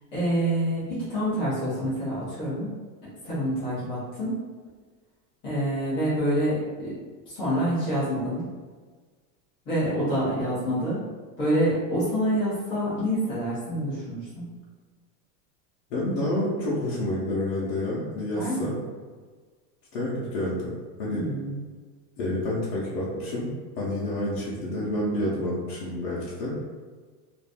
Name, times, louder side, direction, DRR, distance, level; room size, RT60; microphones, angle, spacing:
voice 1, 0.1-2.7 3.2-4.4 5.4-6.9 7.3-8.5 9.7-11.0 11.4-14.5 18.3-18.7 21.1-21.6, equal, 10° left, -12 dB, 0.4 m, -27 dB
voice 2, 15.9-18.8 19.9-20.7 21.0-21.3 22.2-23.5 23.8-26.5, left 1 dB, 45° left, -7 dB, 0.7 m, -28 dB
2.5 x 2.4 x 3.4 m, 1.5 s
supercardioid pair, 175°, 50 cm